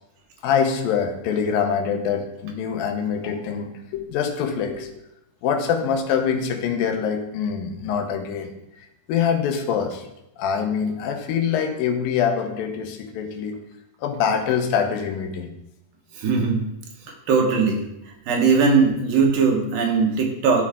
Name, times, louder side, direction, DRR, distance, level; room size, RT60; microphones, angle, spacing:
voice 1, 0.4-4.9 5.4-8.5 9.1-10.1 10.4-13.6 14.0-15.5, left 7 dB, 85° left, 5 dB, 2.6 m, -24 dB
voice 2, 16.1-16.6 17.3-17.8 18.3-20.6, right 5 dB, 90° right, 0 dB, 3.1 m, -19 dB
12.5 x 4.6 x 3.6 m, 0.86 s
omnidirectional pair, 4.0 m